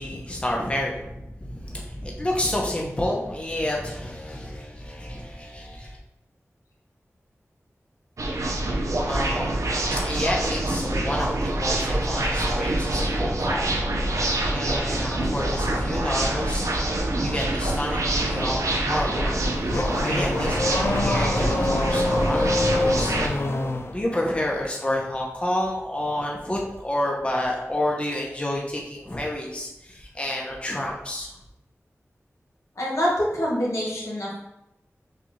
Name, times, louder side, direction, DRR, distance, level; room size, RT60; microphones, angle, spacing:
voice 1, 0.0-6.0 9.1-19.4 20.0-23.2 23.9-31.3, left 1 dB, 20° left, -2 dB, 0.7 m, -29 dB
sound 1, 8.2-23.3, right 1 dB, 90° right, 0.6 m, -26 dB
Car / Accelerating revving vroom, 19.0-24.0, left 2 dB, 55° left, 0.4 m, -25 dB
voice 2, 32.8-34.4, equal, 75° left, -4 dB, 1.4 m, -25 dB
6.5 x 2.4 x 3.1 m, 0.87 s
wide cardioid pair, 70°, 5 cm